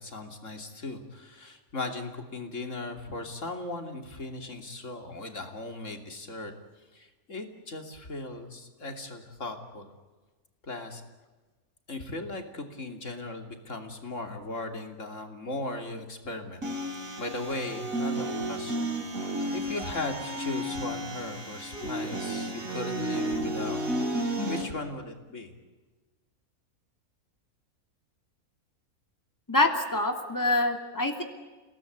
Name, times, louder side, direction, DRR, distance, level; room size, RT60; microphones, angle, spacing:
voice 1, 0.0-6.5 6.9-9.9 10.6-11.0 11.9-16.6 16.9-18.9 19.2-23.8 24.2-25.6, left 2 dB, 55° left, 4 dB, 3.3 m, -37 dB
sound 1, 16.6-24.6, right 1 dB, 70° right, 3.5 m, -32 dB
voice 2, 29.5-31.2, left 2 dB, 15° left, 4 dB, 2.7 m, -25 dB
30.0 x 18.5 x 9.5 m, 1.2 s
omnidirectional pair, 1.5 m